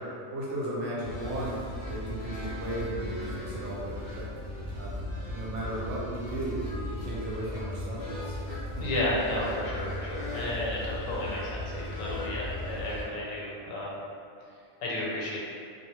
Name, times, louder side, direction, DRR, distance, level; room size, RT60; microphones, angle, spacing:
voice 1, 0.3-1.6 1.9-4.3 4.8-8.4 8.7-8.8, right 1 dB, 70° right, -6 dB, 0.9 m, -35 dB
sound 1, 1.0-13.0, left 1 dB, 55° left, 0.8 m, -37 dB
voice 2, 8.8-14.0 14.8-15.4, left 1 dB, 85° left, -5 dB, 1.0 m, -32 dB
2.2 x 2.1 x 2.9 m, 2.3 s
omnidirectional pair, 1.4 m